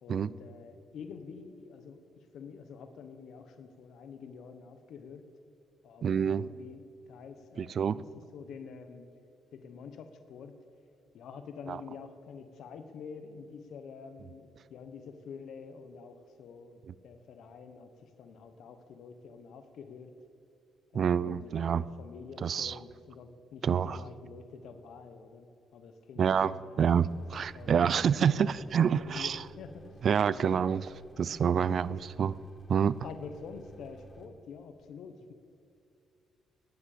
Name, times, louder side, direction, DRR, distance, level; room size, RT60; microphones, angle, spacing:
voice 1, 0.0-5.3 5.8-9.1 9.5-10.6 11.1-20.1 20.9-25.5 25.7-27.0 27.5-28.5 29.0-30.0 30.3-30.7 31.6-32.0 33.0-35.3, left 6 dB, 75° left, 8 dB, 1.3 m, -47 dB
voice 2, 6.0-6.5 7.6-8.0 11.7-11.8 16.9-17.0 20.9-21.8 22.4-22.8 23.6-24.0 26.2-29.4 30.0-30.9 31.2-32.3 32.7-33.0, right 7 dB, 55° right, 19 dB, 0.5 m, -27 dB
sound 1, 26.9-34.3, right 2 dB, 20° left, 2.0 m, -52 dB
18.0 x 10.0 x 6.8 m, 2.5 s
cardioid pair, 90°, 0 cm